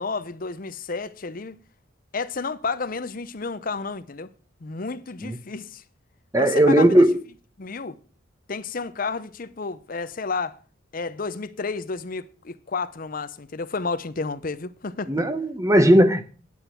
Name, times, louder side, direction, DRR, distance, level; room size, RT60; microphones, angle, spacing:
voice 1, 0.0-1.6 2.1-4.3 4.6-5.8 6.4-7.1 7.6-8.0 8.5-10.6 10.9-15.1, left 4 dB, 45° left, 0.7 m, -31 dB
voice 2, 6.3-7.2 15.1-16.2, right 1 dB, 15° right, 0.8 m, -17 dB
9.3 x 9.1 x 5.8 m
head